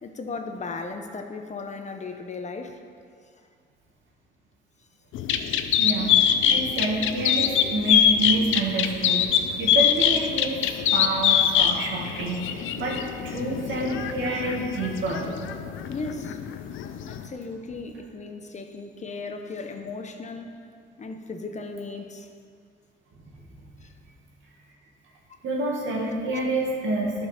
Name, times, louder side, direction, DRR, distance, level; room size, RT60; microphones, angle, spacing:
voice 1, 0.0-2.8 5.3-5.4 15.9-16.4 17.1-20.5 21.0-22.3 23.8-23.9 26.3-26.4, left 3 dB, 35° left, 5 dB, 0.9 m, -36 dB
sound 1, 5.1-17.3, left 9 dB, 80° left, 0.6 m, -24 dB
voice 2, 5.8-9.3 9.6-13.0 13.2-15.3 25.4-27.3, right 2 dB, 75° right, -2 dB, 2.1 m, -28 dB
11.5 x 5.4 x 5.8 m, 2.2 s
cardioid pair, 90°, 20 cm